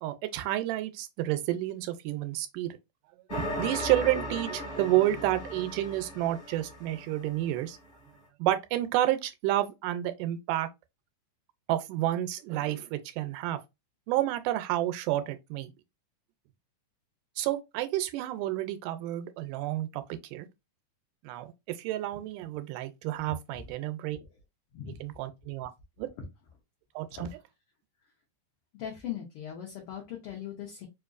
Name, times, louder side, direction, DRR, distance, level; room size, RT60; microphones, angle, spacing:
voice 1, 0.0-2.8 3.3-7.8 8.4-10.7 11.7-13.6 14.1-15.7 17.4-20.5 21.2-24.2 25.0-25.7 26.0-26.1 27.0-27.3, right 14 dB, 85° right, 2.2 m, -30 dB
sound 1, 3.3-7.8, left 1 dB, 40° left, 0.7 m, -37 dB
voice 2, 28.7-30.9, left 10 dB, 75° left, 1.3 m, -39 dB
4.8 x 2.6 x 2.4 m
omnidirectional pair, 3.7 m